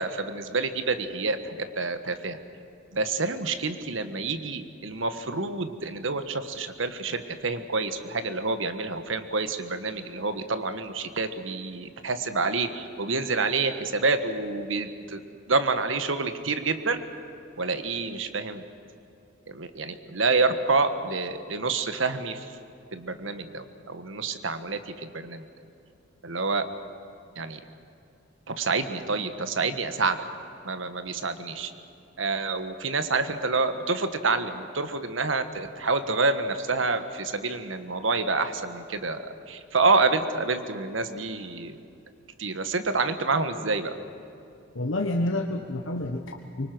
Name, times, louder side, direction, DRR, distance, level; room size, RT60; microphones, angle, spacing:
voice 1, 0.0-2.4 2.9-15.2 15.5-17.0 17.6-18.6 19.5-22.5 22.9-25.4 26.2-26.6 27.4-27.6 28.5-30.2 30.6-31.7 32.2-41.8 42.4-43.9, right 3 dB, 80° right, 9 dB, 1.4 m, -28 dB
voice 2, 44.7-46.7, left 1 dB, 75° left, 3 dB, 1.3 m, -29 dB
24.5 x 24.5 x 6.2 m, 2.7 s
head